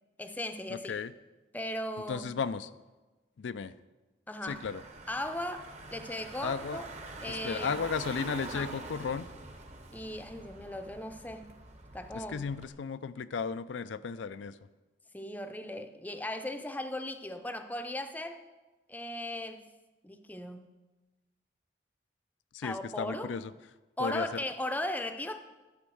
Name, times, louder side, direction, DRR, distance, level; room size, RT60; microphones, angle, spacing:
voice 1, 0.2-0.9 1.5-2.2 4.3-4.6 5.1-6.9 7.2-7.7 8.5-8.7 9.9-11.5 11.9-12.4 15.1-18.4 18.9-19.7 20.0-20.7 22.6-23.3 24.0-25.4, left 1 dB, 10° left, 8 dB, 0.5 m, -37 dB
voice 2, 0.7-1.1 2.1-2.7 3.4-3.7 4.4-4.8 6.4-6.8 7.3-9.3 12.1-14.6 22.5-23.5 24.0-24.3, left 5 dB, 85° left, 13 dB, 0.4 m, -34 dB
Car / Engine, 4.5-12.7, right 3 dB, 40° right, 0.9 m, -45 dB
12.0 x 5.4 x 7.7 m, 1.2 s
head